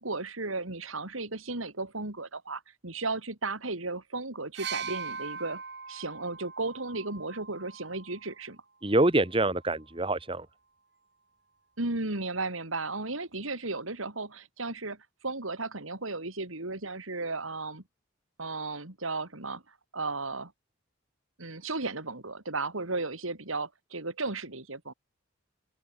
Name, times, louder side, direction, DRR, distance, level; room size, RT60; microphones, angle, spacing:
voice 1, 0.0-5.6 5.9-8.6 11.8-15.0 15.2-17.8 18.4-19.6 19.9-20.5 21.4-24.9, right 3 dB, 90° right, 3.8 m, -35 dB
sound 1, 4.6-8.4 9.4-9.6, right 6 dB, 55° right, 6.1 m, -40 dB
voice 2, 8.8-10.5, right 2 dB, 25° right, 1.6 m, -25 dB
open air
head